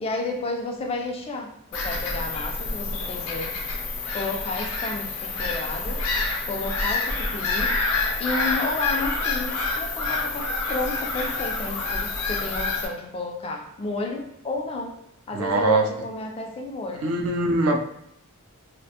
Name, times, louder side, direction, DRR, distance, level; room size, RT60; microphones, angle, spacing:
voice 1, 0.0-3.8 4.1-6.0 6.4-7.7 8.2-14.9 15.3-17.2, left 2 dB, 25° left, 2 dB, 0.3 m, -32 dB
Bird vocalization bird call bird song / Gull seagull, 1.7-12.9, left 3 dB, 85° left, 0.5 m, -27 dB
voice 2, 15.3-15.8 17.0-17.8, right 2 dB, 80° right, 2 dB, 0.4 m, -22 dB
2.4 x 2.1 x 2.7 m, 0.74 s
head